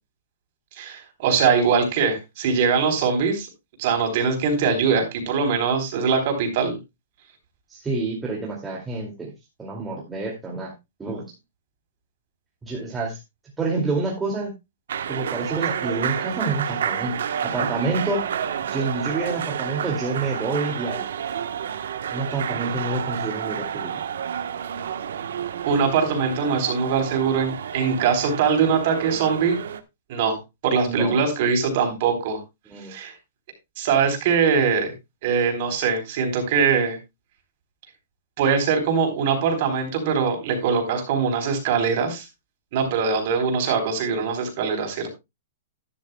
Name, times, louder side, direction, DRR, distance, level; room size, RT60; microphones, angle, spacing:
voice 1, 0.8-3.5 3.8-6.8 25.7-29.6 30.1-30.4 30.6-32.4 32.9-33.1 33.8-34.9 35.2-37.0 38.4-42.2 42.7-45.1, right 6 dB, 45° right, 5 dB, 4.1 m, -22 dB
voice 2, 7.7-9.3 9.6-10.7 11.0-11.3 12.6-13.2 13.6-14.5 15.1-18.2 18.7-21.1 22.1-23.9 30.9-31.1 32.7-32.9, right 3 dB, 10° right, -3 dB, 2.5 m, -28 dB
sound 1, 14.9-29.8, right 8 dB, 75° right, 1.2 m, -30 dB
12.0 x 11.5 x 2.3 m, 0.23 s
hypercardioid pair, 155°, 0 cm